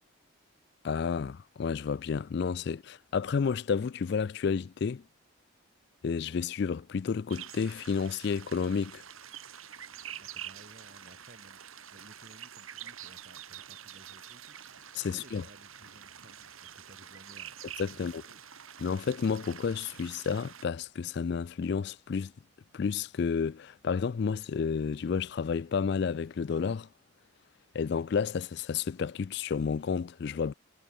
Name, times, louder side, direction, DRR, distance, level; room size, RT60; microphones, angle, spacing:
voice 1, 0.8-5.0 6.0-9.0 14.9-15.4 17.8-18.2 18.8-22.3 22.7-26.9 27.7-30.5, left 6 dB, 50° left, 0.3 m, -31 dB
sound 1, 7.3-20.7, right 10 dB, 80° right, 3.1 m, -47 dB
voice 2, 10.2-11.6 11.9-14.6 15.0-17.5 17.9-18.4, right 1 dB, 45° right, 3.2 m, -57 dB
sound 2, 13.9-15.3, right 10 dB, 60° right, 3.4 m, -60 dB
head